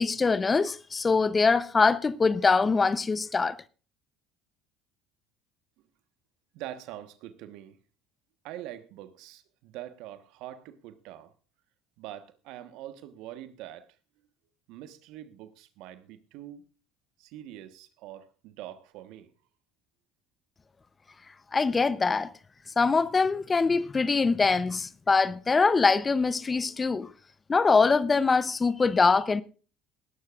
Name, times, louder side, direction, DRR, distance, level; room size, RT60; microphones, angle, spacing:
voice 1, 0.0-3.6 21.5-22.3 22.8-27.1 27.5-29.4, left 4 dB, 25° left, 0.7 m, -23 dB
voice 2, 6.5-7.8 8.4-11.3 12.0-13.9 14.7-16.6 17.2-19.3, right 12 dB, 70° right, 1.2 m, -44 dB
19.0 x 12.0 x 2.5 m
hypercardioid pair, 70°, 0 cm